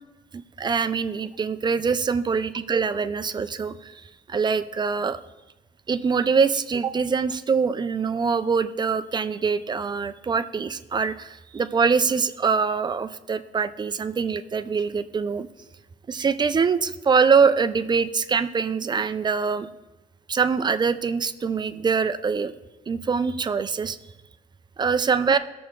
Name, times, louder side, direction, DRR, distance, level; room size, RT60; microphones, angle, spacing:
voice 1, 0.3-3.9 4.3-5.2 5.9-15.5 16.1-19.7 20.3-22.5 22.9-24.0 24.8-25.4, right 5 dB, 25° right, 11 dB, 0.5 m, -24 dB
17.0 x 7.0 x 3.2 m, 1.1 s
cardioid pair, 110°, 17 cm